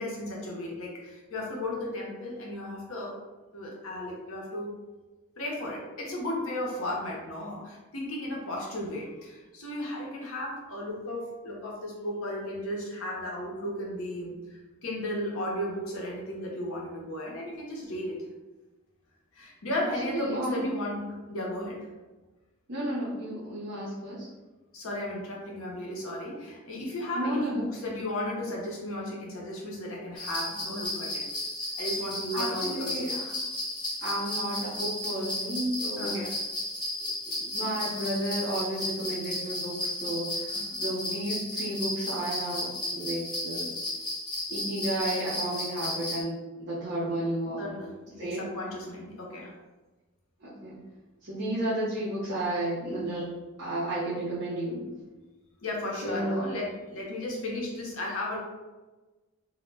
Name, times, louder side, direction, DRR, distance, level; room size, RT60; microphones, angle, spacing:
voice 1, 0.0-3.2 3.5-4.8 5.4-18.2 19.3-21.8 24.7-31.3 31.8-33.1 36.0-36.4 40.5-40.6 47.6-49.5 55.6-58.4, left 1 dB, 70° left, -2 dB, 0.6 m, -35 dB
voice 2, 19.7-20.8 22.7-24.3 27.2-27.9 32.3-33.3 34.0-36.2 37.3-43.7 44.5-47.6 48.2-48.5 50.4-50.8 51.2-53.3 53.6-54.9 56.0-56.5, right 1 dB, 50° right, -9 dB, 0.6 m, -32 dB
sound 1, 30.2-46.2, left 1 dB, 20° left, 0.5 m, -34 dB
2.1 x 2.0 x 3.2 m, 1.2 s
head